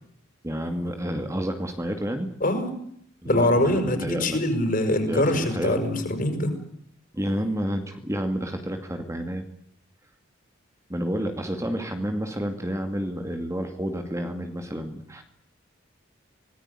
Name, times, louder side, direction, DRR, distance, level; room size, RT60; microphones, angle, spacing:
voice 1, 0.4-2.3 3.2-4.4 5.1-5.9 7.1-9.5 10.9-15.2, equal, 15° right, 6 dB, 2.3 m, -30 dB
voice 2, 3.2-6.5, left 1 dB, 45° left, 7 dB, 6.5 m, -23 dB
25.5 x 19.5 x 9.9 m, 0.68 s
head